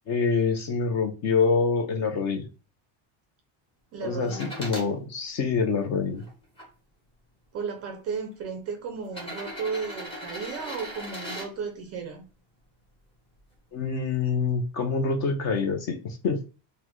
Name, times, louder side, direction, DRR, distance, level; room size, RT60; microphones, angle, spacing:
voice 1, 0.1-2.5 4.0-6.2 13.7-16.4, left 5 dB, 35° left, 0.5 m, -26 dB
voice 2, 3.9-4.5 7.5-12.3, right 5 dB, 35° right, 0.4 m, -34 dB
sound 1, 4.3-4.9 5.6-6.7 7.6-7.7 9.0-11.5 13.4-13.5, equal, 10° left, 0.8 m, -38 dB
4.0 x 2.1 x 3.0 m
cardioid pair, 175°, 48 cm